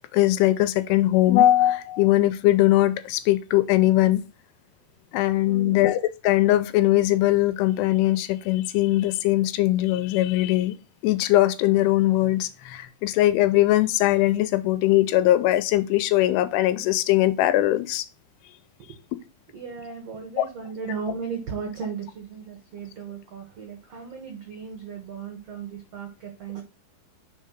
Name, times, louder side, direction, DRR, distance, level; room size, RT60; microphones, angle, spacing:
voice 1, 0.1-4.2 5.1-10.7 11.0-18.1 20.4-20.5, left 15 dB, 85° left, 2.7 m, -21 dB
voice 2, 5.5-5.8 18.8-19.0 19.5-26.6, right 6 dB, 75° right, 1.4 m, -36 dB
5.2 x 4.7 x 5.8 m
omnidirectional pair, 4.7 m